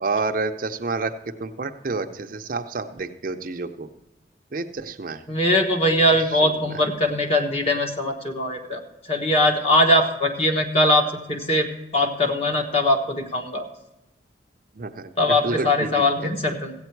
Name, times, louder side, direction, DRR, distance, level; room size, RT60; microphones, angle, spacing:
voice 1, 0.0-3.9 4.5-5.2 6.4-6.5 14.8-15.1 15.4-16.3, right 3 dB, 45° right, 7 dB, 0.6 m, -29 dB
voice 2, 5.3-11.7 11.9-13.7 15.2-16.7, left 1 dB, 35° left, 3 dB, 1.3 m, -21 dB
15.0 x 8.6 x 4.6 m, 0.97 s
head